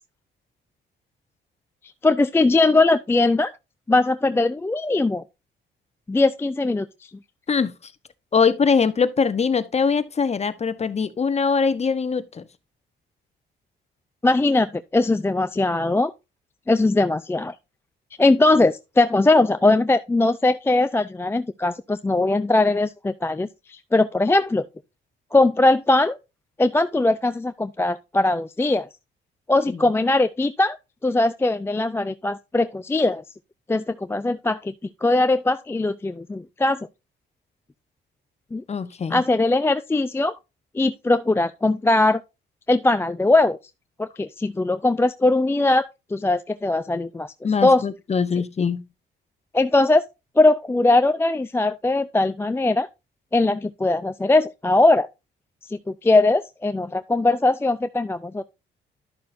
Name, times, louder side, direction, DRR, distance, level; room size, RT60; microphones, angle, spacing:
voice 1, 2.0-3.5 3.9-5.2 6.1-7.1 14.2-16.1 16.7-17.5 18.2-24.7 25.3-26.2 26.6-28.9 29.5-30.8 31.0-33.2 33.7-34.7 35.0-36.9 38.5-38.6 39.1-40.3 40.7-42.2 42.7-43.6 44.0-47.3 47.6-47.8 49.5-50.1 50.4-52.9 53.3-55.1 55.7-58.4, left 2 dB, 10° left, 0.4 m, -20 dB
voice 2, 8.3-12.4 29.7-29.8 38.7-39.2 47.4-48.8, left 5 dB, 35° left, 0.9 m, -22 dB
11.5 x 6.6 x 2.6 m
cardioid pair, 90°, 20 cm